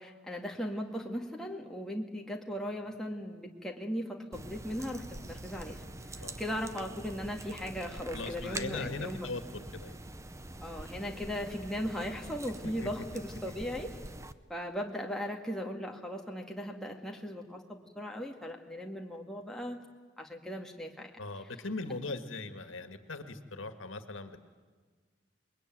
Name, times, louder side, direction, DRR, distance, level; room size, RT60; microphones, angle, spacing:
voice 1, 0.0-9.2 10.6-13.0 13.4-13.9 14.5-19.8 20.2-21.1, equal, 5° left, 0 dB, 2.0 m, -38 dB
sound 1, 4.3-14.3, right 2 dB, 15° right, 0.8 m, -45 dB
voice 2, 8.1-9.4 9.7-10.0 12.6-12.9 13.5-13.6 21.2-24.4, left 3 dB, 90° left, 8 dB, 1.9 m, -39 dB
28.0 x 21.5 x 9.3 m, 1.4 s
head